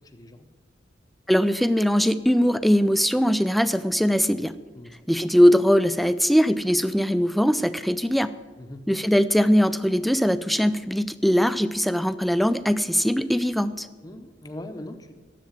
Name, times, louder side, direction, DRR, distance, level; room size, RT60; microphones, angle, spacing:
voice 1, 0.1-0.5 4.7-5.0 8.6-8.8 14.0-15.1, left 1 dB, 20° left, 5 dB, 0.7 m, -40 dB
voice 2, 1.3-4.5 5.1-8.3 8.9-13.9, equal, ahead, 13 dB, 0.3 m, -21 dB
10.5 x 7.7 x 8.7 m, 1.5 s
head